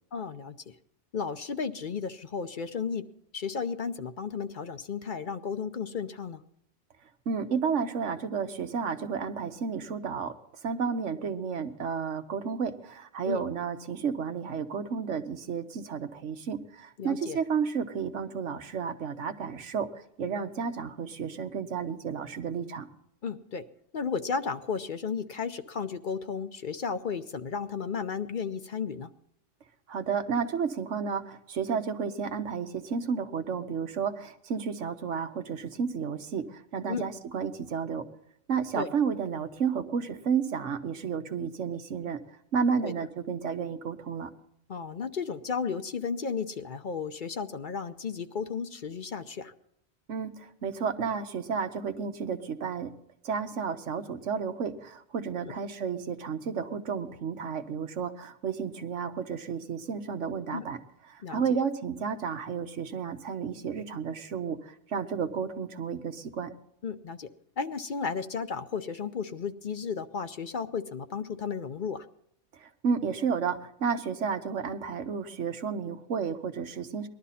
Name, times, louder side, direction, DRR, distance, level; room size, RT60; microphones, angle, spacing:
voice 1, 0.1-0.8 1.1-3.0 3.3-6.4 13.3-13.4 17.0-17.4 23.2-23.6 23.9-29.1 36.9-37.1 38.8-38.9 42.8-42.9 44.7-49.5 55.4-55.5 60.5-60.6 61.2-61.4 66.8-67.3 67.6-72.1, left 6 dB, 50° left, 9 dB, 0.7 m, -34 dB
voice 2, 7.3-10.3 10.6-22.9 29.9-38.1 38.5-42.2 42.5-44.3 50.1-52.9 53.2-60.8 61.1-66.5 72.5-77.1, right 6 dB, 85° right, 8 dB, 1.3 m, -32 dB
20.0 x 12.0 x 4.2 m, 0.73 s
omnidirectional pair, 1.2 m